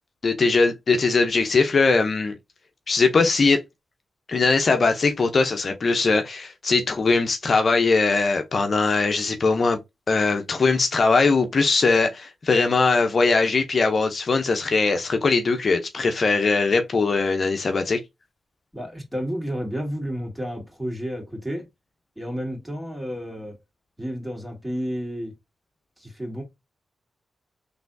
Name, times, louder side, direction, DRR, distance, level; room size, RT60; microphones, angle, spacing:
voice 1, 0.2-2.3 2.9-3.6 4.3-9.8 10.1-18.0, left 4 dB, 55° left, 0.7 m, -20 dB
voice 2, 18.7-21.6 22.2-23.6 24.0-25.4 26.0-26.4, equal, 10° right, 2.7 m, -31 dB
4.1 x 3.4 x 2.7 m
cardioid pair, 60°, 0 cm